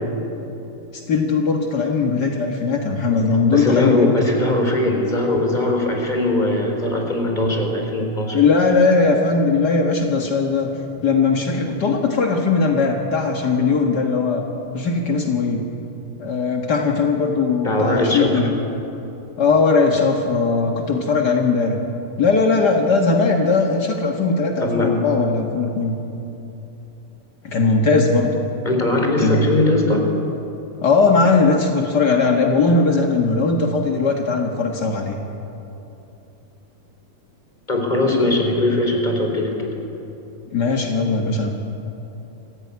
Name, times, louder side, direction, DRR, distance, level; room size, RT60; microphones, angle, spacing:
voice 1, 0.9-4.1 8.3-10.7 11.0-14.4 14.7-15.6 16.2-18.5 19.4-21.8 22.2-26.0 27.4-28.3 29.2-29.5 30.8-35.2 40.5-41.5, left 4 dB, 65° left, 2 dB, 1.0 m, -19 dB
voice 2, 3.5-8.4 17.6-18.4 24.6-25.0 28.6-30.1 37.7-39.7, left 2 dB, 10° left, 2 dB, 3.2 m, -20 dB
25.5 x 15.5 x 9.5 m, 3.0 s
omnidirectional pair, 4.5 m